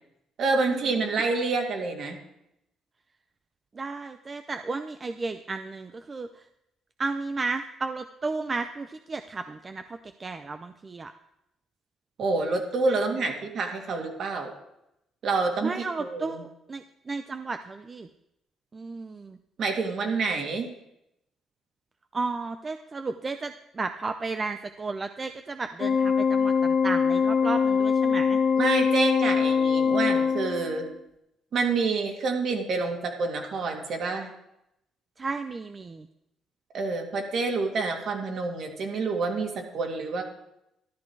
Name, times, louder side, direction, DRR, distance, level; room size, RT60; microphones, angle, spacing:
voice 1, 0.4-2.2 12.2-14.5 15.2-16.4 19.6-20.7 28.6-30.9 31.5-34.3 36.7-40.2, right 3 dB, 55° right, 2 dB, 2.2 m, -27 dB
voice 2, 3.7-6.4 7.0-11.1 12.9-13.0 15.6-18.1 18.7-19.4 22.1-28.4 35.2-36.1, right 3 dB, 25° right, 8 dB, 0.5 m, -33 dB
Organ, 25.8-30.9, left 6 dB, 60° left, 2.3 m, -23 dB
13.0 x 12.0 x 4.7 m, 0.84 s
cardioid pair, 145°, 0 cm